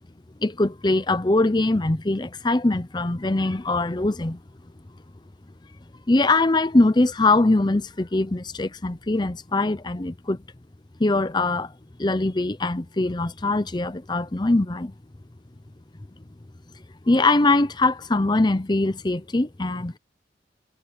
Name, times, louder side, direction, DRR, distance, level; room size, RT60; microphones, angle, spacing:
voice 1, 0.4-4.4 6.1-10.4 11.0-11.7 12.0-14.9 17.1-20.0, left 2 dB, 25° left, 0.6 m, -22 dB
head